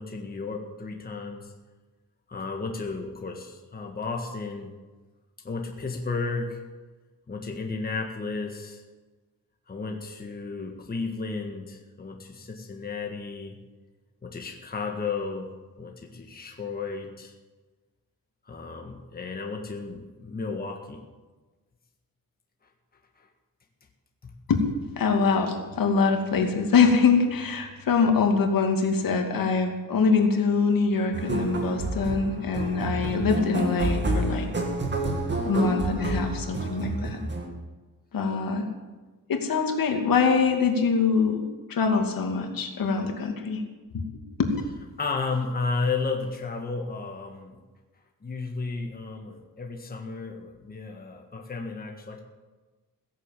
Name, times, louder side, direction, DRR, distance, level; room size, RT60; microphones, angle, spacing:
voice 1, 0.0-1.5 2.3-4.7 5.4-6.6 7.3-8.8 9.7-13.6 14.2-17.3 18.5-21.0 23.2-23.3 24.2-24.3 45.0-47.6 48.2-52.2, left 4 dB, 25° left, 2 dB, 1.7 m, -33 dB
voice 2, 24.9-34.5 35.4-37.2 38.1-38.7 39.3-43.6 43.9-44.0 44.4-44.5, left 5 dB, 70° left, 3 dB, 2.5 m, -24 dB
sound 1, 31.1-37.5, right 2 dB, 30° right, 2.6 m, -29 dB
17.0 x 10.5 x 7.6 m, 1.3 s
wide cardioid pair, 140°, 35 cm